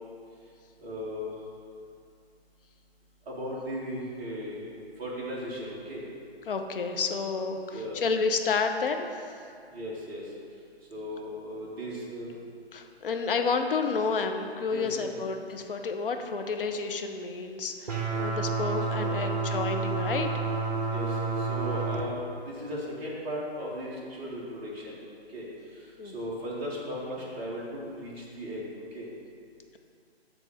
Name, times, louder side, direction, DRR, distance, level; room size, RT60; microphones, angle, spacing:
voice 1, 0.8-1.3 3.3-4.7 5.0-6.0 7.7-8.0 9.7-10.2 10.9-12.3 14.7-15.2 18.9-19.1 20.9-25.0 25.3-25.4 26.1-28.6 28.9-29.1, equal, 10° right, -5 dB, 0.6 m, -36 dB
voice 2, 6.5-9.1 12.7-20.3 26.0-26.1, left 4 dB, 55° left, 5 dB, 0.6 m, -30 dB
sound 1, 17.9-22.0, right 4 dB, 40° right, 0.9 m, -29 dB
6.9 x 3.3 x 6.1 m, 2.4 s
figure-of-eight pair, 135°, 32 cm